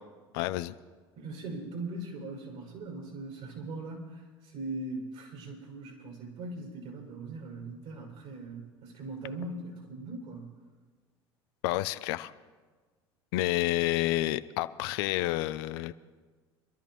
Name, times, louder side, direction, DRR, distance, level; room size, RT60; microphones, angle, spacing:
voice 1, 0.3-0.7 11.6-12.3 13.3-15.9, left 17 dB, 70° left, 13 dB, 0.6 m, -29 dB
voice 2, 1.1-10.5, right 2 dB, 60° right, -1 dB, 5.7 m, -40 dB
26.0 x 12.5 x 3.1 m, 1.4 s
hypercardioid pair, 70°, 13 cm